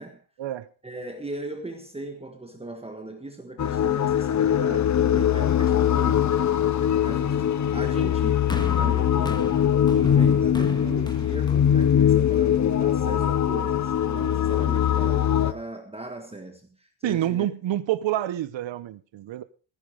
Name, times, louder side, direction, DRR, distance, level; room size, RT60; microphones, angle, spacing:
voice 1, 0.8-6.3 7.0-17.5, right 2 dB, 10° right, 1.4 m, -38 dB
sound 1, 3.6-15.5, left 9 dB, 35° left, 0.8 m, -22 dB
sound 2, 8.5-12.8 13.6-13.7, left 2 dB, 10° left, 1.6 m, -38 dB
voice 2, 17.0-19.4, right 12 dB, 65° right, 1.0 m, -27 dB
15.5 x 10.5 x 5.1 m
cardioid pair, 145°, 49 cm